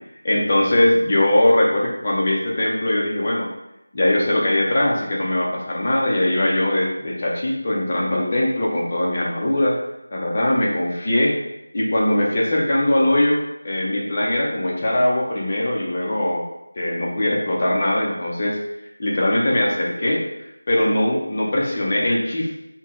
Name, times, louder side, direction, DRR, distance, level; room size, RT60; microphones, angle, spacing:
voice 1, 0.2-3.5 3.9-9.8 10.1-11.4 11.7-16.5 16.8-18.6 19.0-20.2 20.7-22.5, left 1 dB, 30° left, -4 dB, 0.7 m, -21 dB
5.6 x 2.2 x 3.0 m, 0.87 s
figure-of-eight pair, 175°, 0 cm